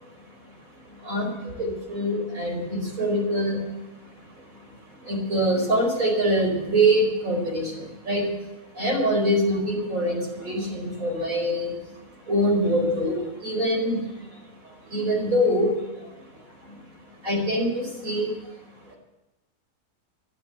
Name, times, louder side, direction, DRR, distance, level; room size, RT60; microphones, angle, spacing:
voice 1, 1.6-3.6 5.1-7.7 8.1-8.3 8.8-11.7 12.3-13.2 13.4-14.0 14.9-15.7 17.2-18.3, equal, 60° right, 1 dB, 5.3 m, -24 dB
14.0 x 12.0 x 8.0 m, 1.0 s
omnidirectional pair, 1.6 m